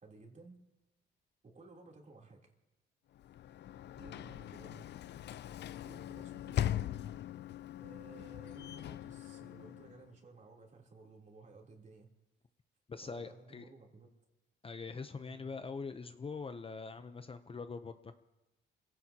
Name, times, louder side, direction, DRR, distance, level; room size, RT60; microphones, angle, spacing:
voice 1, 0.0-0.6 1.4-2.5 3.9-4.8 5.8-6.7 7.8-12.1 13.0-14.1 15.2-15.7, right 3 dB, 40° right, 0 dB, 3.4 m, -56 dB
Sliding door / Slam, 3.1-10.2, left 12 dB, 60° left, 0.5 m, -41 dB
voice 2, 12.9-13.7 14.6-18.1, left 4 dB, 30° left, 9 dB, 0.7 m, -43 dB
28.0 x 17.0 x 2.9 m, 1.0 s
cardioid pair, 90°, 20 cm